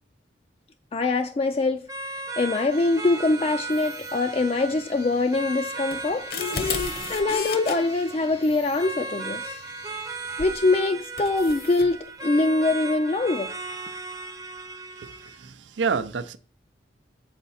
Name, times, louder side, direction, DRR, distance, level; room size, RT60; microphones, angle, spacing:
voice 1, 0.9-1.9 2.1-6.3 6.9-9.6 10.4-13.5, left 3 dB, 30° left, 0.3 m, -24 dB
sound 1, 1.9-15.5, right 3 dB, 20° right, 0.6 m, -36 dB
sound 2, 2.7-10.8, left 4 dB, 85° left, 2.2 m, -49 dB
sound 3, 5.9-7.8 10.4-10.6 11.2-11.9, left 5 dB, 55° left, 0.8 m, -31 dB
voice 2, 15.0-16.4, right 5 dB, 90° right, 0.5 m, -29 dB
7.1 x 4.7 x 4.1 m
head